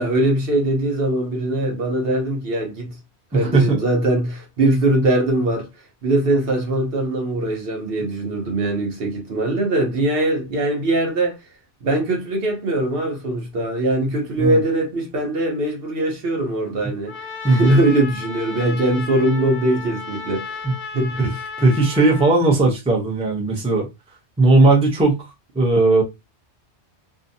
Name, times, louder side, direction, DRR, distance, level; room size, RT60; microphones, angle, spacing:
voice 1, 0.0-2.9 3.3-5.7 6.0-11.4 11.8-17.1 17.4-20.6 20.9-21.2, right 1 dB, 60° right, 0.9 m, -21 dB
voice 2, 3.3-3.8 14.4-14.6 17.4-17.8 20.6-20.7 21.2-21.3 21.6-23.9 24.4-25.2 25.5-26.0, right 2 dB, 5° right, 0.5 m, -17 dB
Trumpet, 17.1-22.3, left 5 dB, 65° left, 0.8 m, -34 dB
2.6 x 2.2 x 2.5 m
omnidirectional pair, 1.2 m